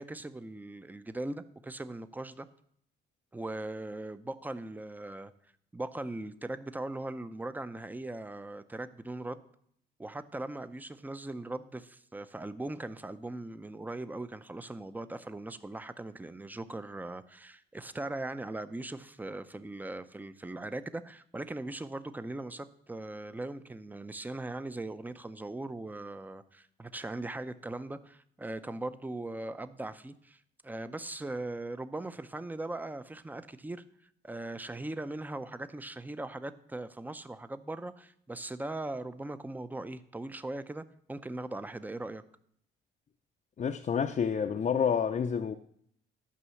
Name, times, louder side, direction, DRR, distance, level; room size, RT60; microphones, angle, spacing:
voice 1, 0.0-2.5 3.3-5.3 5.7-9.4 10.0-33.8 34.2-42.2, right 2 dB, 10° right, 0.6 m, -39 dB
voice 2, 43.6-45.5, left 7 dB, 40° left, 0.6 m, -29 dB
11.5 x 5.4 x 7.0 m
cardioid pair, 90°, 20 cm